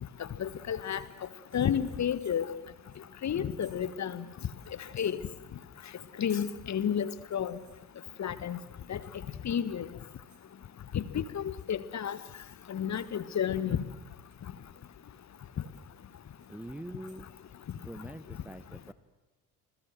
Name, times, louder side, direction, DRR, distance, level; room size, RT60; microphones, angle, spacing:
voice 1, 0.4-1.0 1.5-2.5 3.2-4.2 4.9-5.2 6.2-7.6 8.2-8.6 8.9-9.0 9.4-9.9 10.9-12.2 12.7-13.8, left 8 dB, 35° left, 15 dB, 1.5 m, -31 dB
sound 1, 0.8-4.0 4.3-4.4 4.6-5.7 5.9-8.4 9.0-9.4 9.9-10.5 10.9-11.2 11.6-11.8 12.5-12.6 12.9-13.2 13.9-14.8 15.3-17.3 17.6-17.7, right 5 dB, 80° right, 3.8 m, -63 dB
voice 2, 16.5-17.3 17.8-18.9, right 1 dB, 5° right, 12 dB, 0.9 m, -43 dB
28.5 x 21.0 x 7.7 m, 1.1 s
figure-of-eight pair, 55°, 50 cm